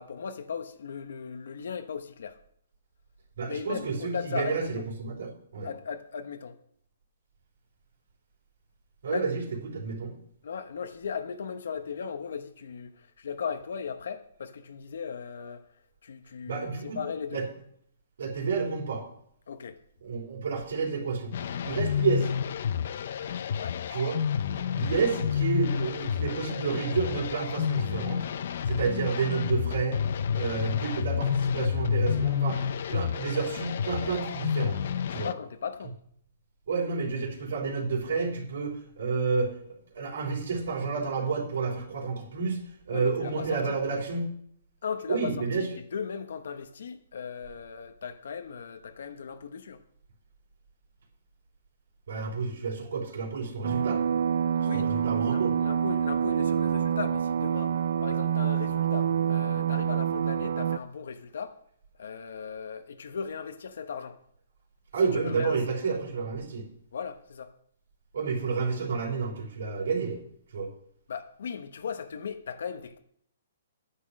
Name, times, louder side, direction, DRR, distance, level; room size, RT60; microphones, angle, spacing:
voice 1, 0.0-2.4 3.5-4.9 5.6-6.6 9.1-9.3 10.4-17.4 19.5-19.8 23.5-23.8 35.2-36.0 42.9-43.6 44.8-49.8 54.6-61.6 62.0-64.2 65.0-65.6 66.9-67.5 71.1-73.0, left 6 dB, 70° left, 0.9 m, -37 dB
voice 2, 3.4-5.7 9.0-10.1 16.5-17.0 17.3-17.4 18.2-19.0 20.0-21.3 21.6-22.3 23.9-24.1 24.7-28.3 28.7-30.0 30.3-32.6 32.9-34.8 35.1-35.3 36.7-44.3 45.1-45.7 52.1-54.0 54.7-55.5 64.9-66.6 68.1-70.2 70.5-70.7, right 4 dB, 75° right, 3.5 m, -30 dB
sound 1, 21.3-35.3, left 8 dB, 50° left, 0.6 m, -30 dB
sound 2, 53.6-60.8, right 8 dB, 60° right, 0.4 m, -27 dB
9.7 x 8.4 x 6.4 m
hypercardioid pair, 170°, 0 cm